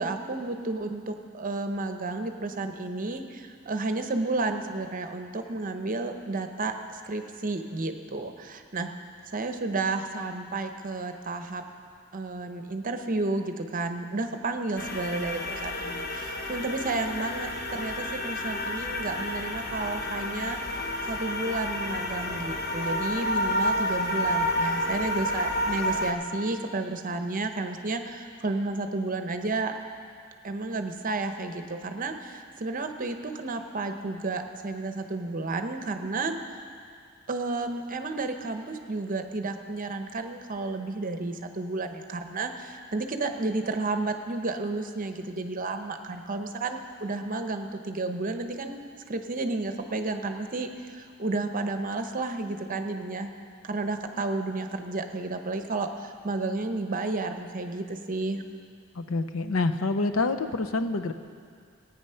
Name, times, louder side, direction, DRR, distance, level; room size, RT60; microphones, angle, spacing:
voice 1, 0.0-8.9 9.3-11.6 12.1-20.6 21.0-29.8 30.4-36.3 37.3-48.8 49.1-53.3 53.6-58.4, right 3 dB, 40° right, 7 dB, 0.8 m, -32 dB
sound 1, 14.8-26.1, left 1 dB, 50° left, 1.0 m, -30 dB
voice 2, 58.9-61.1, left 3 dB, 80° left, 8 dB, 0.7 m, -27 dB
16.5 x 9.0 x 5.7 m, 2.2 s
head